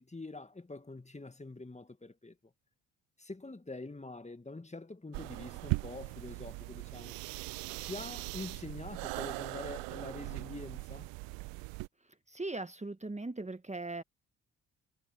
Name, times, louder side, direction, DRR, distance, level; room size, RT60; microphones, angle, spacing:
voice 1, 0.0-2.5 3.2-7.2 7.8-11.1, left 2 dB, 15° left, 2.2 m, -45 dB
sound 1, 5.1-11.9, right 26 dB, 70° right, 0.9 m, -39 dB
voice 2, 12.3-14.0, right 2 dB, 15° right, 1.7 m, -39 dB
hypercardioid pair, 45°, 45 cm